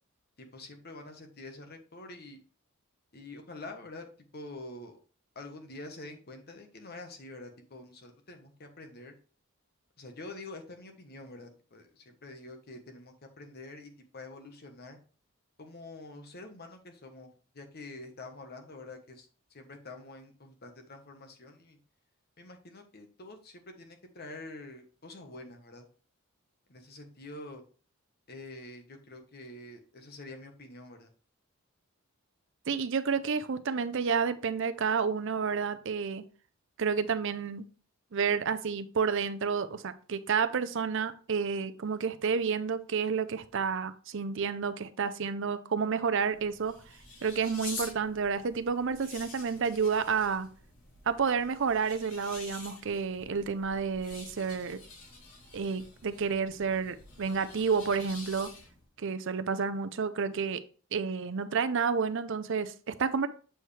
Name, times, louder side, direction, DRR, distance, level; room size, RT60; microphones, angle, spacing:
voice 1, 0.4-2.4 3.1-4.1 4.3-5.0 5.3-9.1 10.0-15.0 15.6-17.3 17.5-21.8 22.4-25.8 26.7-27.6 28.3-31.1, left 2 dB, 50° left, 5 dB, 1.2 m, -46 dB
voice 2, 32.7-36.2 36.8-37.6 38.1-46.8 47.2-50.5 51.1-54.8 55.5-58.5 59.0-60.6 60.9-63.3, right 5 dB, 60° right, 11 dB, 0.6 m, -30 dB
sound 1, 46.1-58.9, left 3 dB, 80° left, 2.9 m, -48 dB
7.7 x 4.6 x 3.3 m, 0.40 s
head